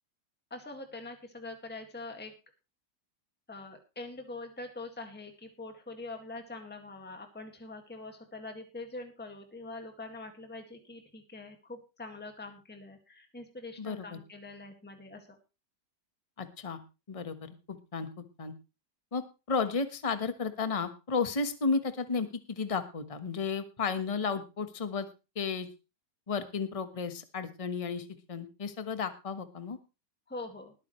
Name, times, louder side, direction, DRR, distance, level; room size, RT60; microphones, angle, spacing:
voice 1, 0.5-2.3 3.5-15.3 30.3-30.7, left 2 dB, 5° left, 5 dB, 1.8 m, -44 dB
voice 2, 13.8-14.2 16.4-16.8 17.1-18.1 18.4-18.5 19.1-25.1 25.3-25.7 26.3-29.8, left 5 dB, 20° left, 10 dB, 1.2 m, -33 dB
20.0 x 9.1 x 3.2 m, 0.29 s
omnidirectional pair, 1.9 m